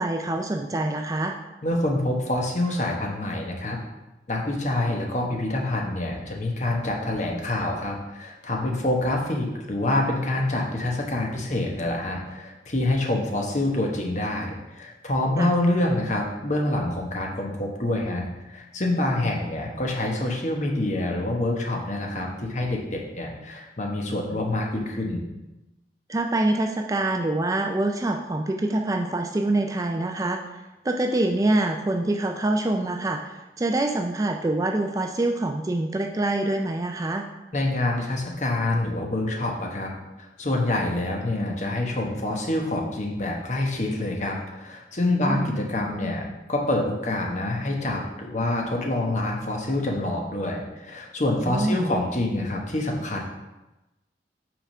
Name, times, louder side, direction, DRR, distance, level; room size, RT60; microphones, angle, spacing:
voice 1, 0.0-1.4 15.4-15.5 19.0-19.3 26.1-30.4 30.8-37.2 45.2-45.5 51.4-51.9, right 2 dB, 20° right, 3 dB, 0.3 m, -25 dB
voice 2, 1.6-3.8 4.3-25.3 37.5-39.9 40.2-53.2, left 1 dB, 40° left, 0 dB, 1.0 m, -26 dB
5.8 x 3.6 x 5.5 m, 1.0 s
head